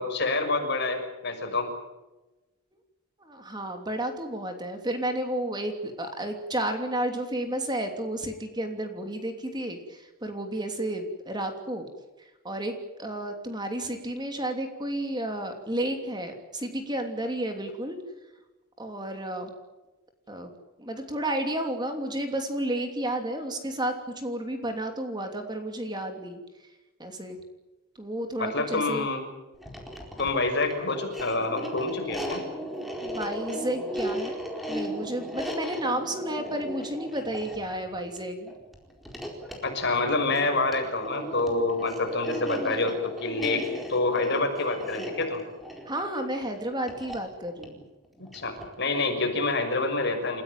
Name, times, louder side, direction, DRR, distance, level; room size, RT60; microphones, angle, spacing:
voice 1, 0.0-1.7 28.4-29.2 30.2-32.4 39.6-43.6 43.9-45.4 48.2-50.4, left 3 dB, 50° left, 4 dB, 6.2 m, -27 dB
voice 2, 3.2-11.9 12.4-12.7 13.0-18.0 18.8-19.5 20.3-20.5 20.8-26.7 27.0-27.4 28.0-29.1 33.0-34.4 34.7-38.5 45.9-47.8, right 1 dB, 20° right, 5 dB, 2.9 m, -32 dB
sound 1, 29.5-48.8, equal, ahead, 4.3 m, -37 dB
29.5 x 16.0 x 9.2 m, 1.1 s
head